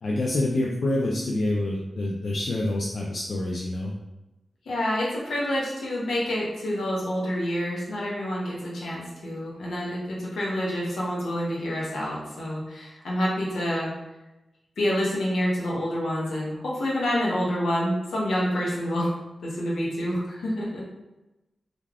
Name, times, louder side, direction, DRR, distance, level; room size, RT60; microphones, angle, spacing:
voice 1, 0.0-3.9, left 1 dB, 65° left, -3 dB, 0.3 m, -27 dB
voice 2, 4.6-13.9 14.8-19.1 19.4-20.8, equal, 85° left, -5 dB, 0.8 m, -28 dB
2.4 x 2.3 x 3.3 m, 1.0 s
cardioid pair, 50°, 0 cm